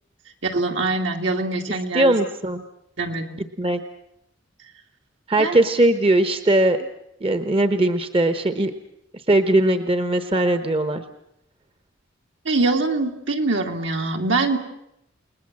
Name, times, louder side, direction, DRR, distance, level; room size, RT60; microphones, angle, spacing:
voice 1, 0.4-2.1 3.0-3.3 5.4-5.5 12.4-14.6, right 3 dB, 70° right, 3 dB, 2.8 m, -23 dB
voice 2, 1.9-2.6 3.6-3.8 5.3-6.8 7.2-8.7 9.3-11.0, right 1 dB, 30° right, 9 dB, 1.1 m, -19 dB
29.5 x 20.0 x 7.6 m, 0.79 s
head